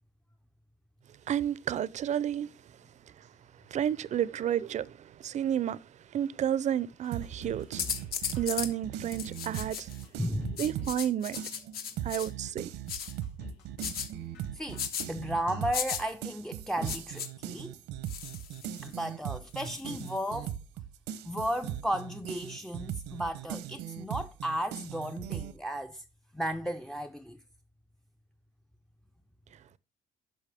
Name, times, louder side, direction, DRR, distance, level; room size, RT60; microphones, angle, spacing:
voice 1, 1.3-2.5 3.7-5.8 6.1-7.8 8.4-9.9 10.6-11.4 12.0-12.7, right 10 dB, 45° right, 0.5 m, -31 dB
sound 1, 7.0-8.1 8.3-9.0 9.5-9.6 10.0-11.1 11.3-12.0 12.5-12.6 13.0-14.1 14.3-15.0 15.3-15.4, left 3 dB, 90° left, 2.3 m, -49 dB
sound 2, 7.1-11.1 11.4-25.5, right 11 dB, 85° right, 0.9 m, -39 dB
sound 3, 7.8-8.7 9.1-10.0 10.6-12.3 12.9-13.1 13.8-14.1 14.8-15.1 15.7-16.0 16.8-17.3 18.1-19.0 19.6-20.1, left 8 dB, 65° left, 1.4 m, -36 dB
voice 2, 10.2-10.6 14.5-17.7 18.8-20.5 21.2-26.0 26.3-27.4, equal, 5° left, 0.5 m, -34 dB
10.5 x 6.3 x 3.4 m
cardioid pair, 110°, 17 cm